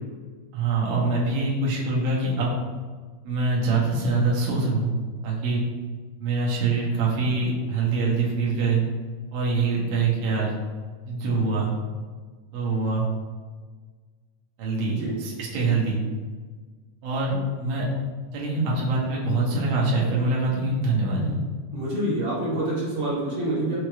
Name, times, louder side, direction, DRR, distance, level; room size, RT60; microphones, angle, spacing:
voice 1, 0.5-2.5 3.2-4.9 5.2-5.6 6.2-8.8 9.3-10.5 11.1-11.7 12.5-13.1 14.6-16.0 17.0-17.9 18.3-21.4, right 3 dB, 85° right, -4 dB, 2.4 m, -24 dB
voice 2, 14.8-15.1 21.7-23.8, right 1 dB, 55° right, -8 dB, 1.9 m, -27 dB
5.7 x 3.0 x 2.3 m, 1.5 s
omnidirectional pair, 3.7 m